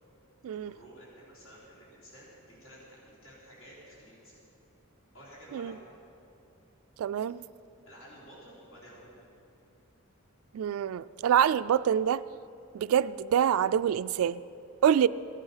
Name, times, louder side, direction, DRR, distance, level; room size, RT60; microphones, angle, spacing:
voice 1, 0.5-4.4 5.1-5.8 7.9-9.3, equal, 80° left, -6 dB, 3.6 m, -52 dB
voice 2, 7.0-7.4 10.5-12.2 12.7-14.4 14.8-15.1, right 9 dB, 85° right, 15 dB, 0.3 m, -26 dB
15.5 x 11.0 x 5.7 m, 2.7 s
head